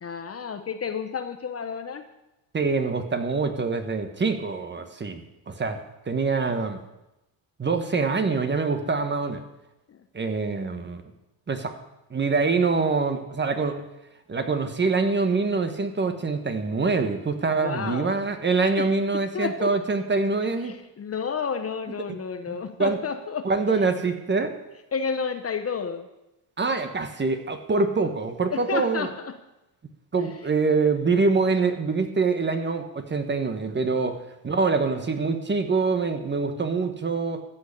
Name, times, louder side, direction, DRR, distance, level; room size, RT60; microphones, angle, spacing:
voice 1, 0.0-2.0 9.9-10.0 17.6-18.2 18.8-18.9 19.1-19.7 20.6-23.5 24.9-26.1 28.5-29.3 30.2-30.3, left 6 dB, 30° left, 8 dB, 0.9 m, -31 dB
voice 2, 2.5-5.8 6.1-6.8 7.6-9.4 10.1-11.0 11.5-11.7 12.1-13.8 14.3-20.7 22.1-22.2 22.5-23.0 23.4-24.5 26.6-29.1 30.1-37.4, right 4 dB, 20° right, 7 dB, 1.4 m, -25 dB
14.0 x 6.3 x 8.4 m, 0.94 s
supercardioid pair, 100°, 49 cm